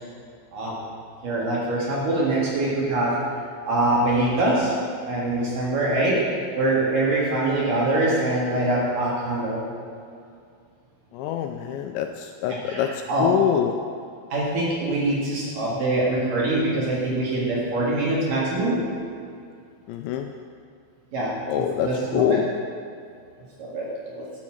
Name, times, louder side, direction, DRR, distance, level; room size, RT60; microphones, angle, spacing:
voice 1, 1.2-3.2 3.7-4.7 5.1-6.2 6.5-9.6 12.7-13.3 14.3-18.9 21.1-22.4 23.6-23.9 24.1-24.3, right 2 dB, 55° right, -5 dB, 3.0 m, -24 dB
voice 2, 11.1-13.7 19.9-20.3 21.5-22.5, left 10 dB, 85° left, 5 dB, 2.7 m, -25 dB
12.0 x 7.2 x 7.2 m, 2.3 s
omnidirectional pair, 5.6 m